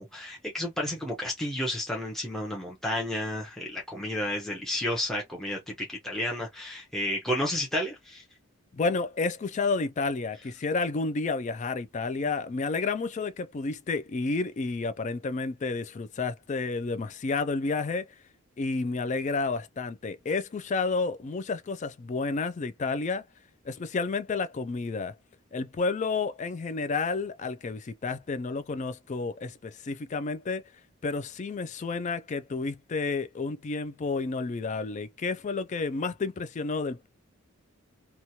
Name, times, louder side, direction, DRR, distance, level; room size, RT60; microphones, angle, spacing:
voice 1, 0.0-8.2, left 1 dB, ahead, 0.7 m, -31 dB
voice 2, 8.7-18.2 18.6-23.2 23.6-25.1 25.5-30.7 31.0-37.1, left 4 dB, 35° left, 0.3 m, -30 dB
3.0 x 2.3 x 2.7 m
head